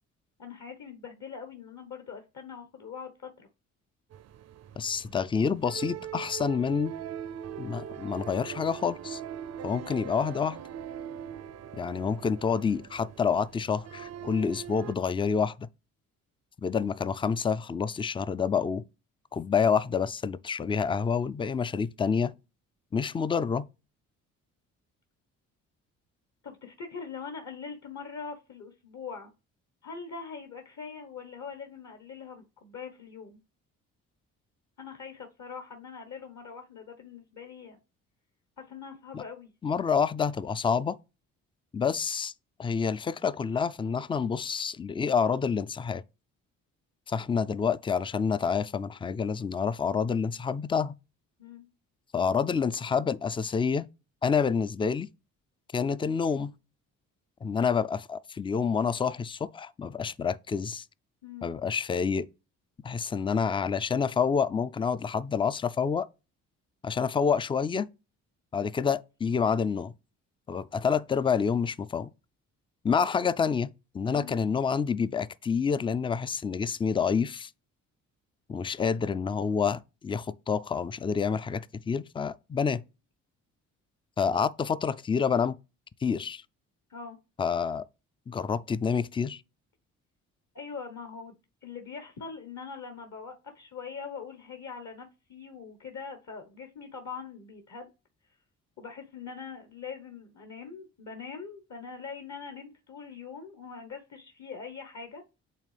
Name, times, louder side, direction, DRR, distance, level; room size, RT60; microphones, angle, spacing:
voice 1, 0.4-3.5 26.4-29.3 29.8-33.4 34.8-37.8 38.6-39.5 51.4-51.7 61.2-61.5 74.1-74.3 86.9-87.2 90.5-97.9 98.8-105.2, left 5 dB, 45° left, 1.2 m, -42 dB
sound 1, 4.1-14.9, right 9 dB, 45° right, 0.5 m, -41 dB
voice 2, 4.8-6.9 7.6-9.2 9.6-10.6 11.7-15.7 16.6-18.8 19.3-22.3 22.9-23.7 39.1-39.2 39.6-41.0 41.7-42.3 42.6-46.0 47.1-50.9 52.1-53.9 54.2-55.1 55.7-56.5 57.4-60.8 61.4-62.3 62.8-66.1 66.8-67.9 68.5-69.9 70.5-72.1 72.8-77.5 78.5-82.8 84.2-85.6 86.0-86.4 87.4-87.9 88.3-89.4, left 6 dB, 15° left, 0.3 m, -28 dB
8.5 x 3.4 x 3.3 m
hypercardioid pair, 50°, 39 cm